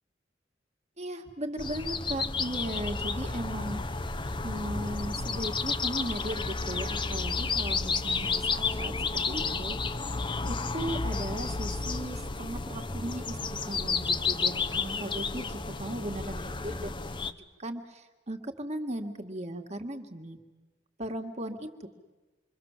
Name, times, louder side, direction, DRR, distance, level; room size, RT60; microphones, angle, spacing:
voice 1, 1.0-3.8 4.4-10.0 10.5-20.4 21.0-21.9, right 1 dB, 35° right, 5 dB, 2.1 m, -37 dB
sound 1, 1.6-17.3, left 4 dB, 25° left, 0.9 m, -31 dB
27.5 x 23.5 x 7.6 m, 1.2 s
head